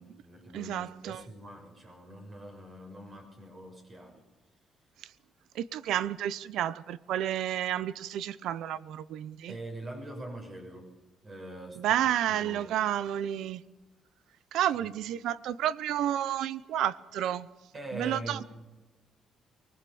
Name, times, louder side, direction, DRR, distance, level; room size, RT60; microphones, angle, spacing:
voice 1, 0.0-4.2 9.5-10.9 11.2-12.0 12.3-12.7 14.8-14.9 17.7-18.5, right 1 dB, 40° right, 6.5 m, -43 dB
voice 2, 0.5-1.2 5.0-5.1 5.5-9.6 11.8-13.6 14.5-17.5 17.9-18.4, right 11 dB, 85° right, 0.8 m, -31 dB
24.5 x 20.5 x 7.0 m
cardioid pair, 90°, 0 cm